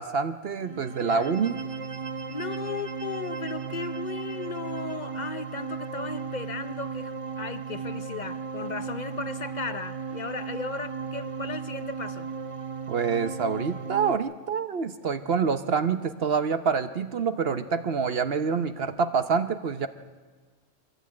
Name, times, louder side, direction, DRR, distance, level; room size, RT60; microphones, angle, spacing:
voice 1, 0.0-1.6 12.9-19.9, right 5 dB, 55° right, 10 dB, 1.0 m, -26 dB
sound 1, 0.6-14.2, right 5 dB, 35° right, 0.6 m, -36 dB
voice 2, 2.3-12.3, left 4 dB, 40° left, 11 dB, 0.7 m, -36 dB
23.5 x 15.5 x 8.7 m, 1.4 s
omnidirectional pair, 1.3 m